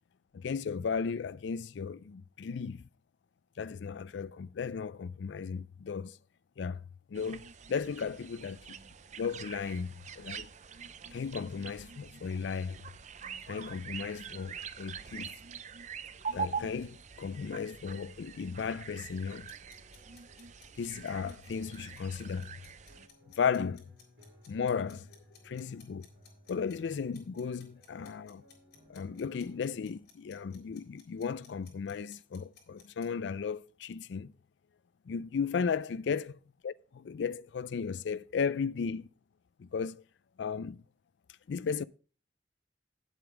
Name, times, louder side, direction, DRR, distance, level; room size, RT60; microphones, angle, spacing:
voice 1, 0.3-2.9 3.6-6.2 6.6-6.8 7.1-8.6 9.2-10.5 11.1-12.8 13.5-15.3 16.3-19.5 20.8-22.5 23.4-23.9 24.5-25.2 25.4-26.1 26.5-28.4 28.9-34.3 35.1-36.2 36.6-39.1 39.6-40.0 40.4-40.8 41.5-41.8, left 6 dB, 90° left, 0.4 m, -35 dB
sound 1, 7.1-23.1, right 6 dB, 40° right, 0.6 m, -44 dB
sound 2, 19.5-33.1, left 7 dB, 60° left, 3.8 m, -59 dB
sound 3, 19.6-30.0, equal, 65° right, 6.2 m, -62 dB
8.9 x 8.0 x 4.8 m
head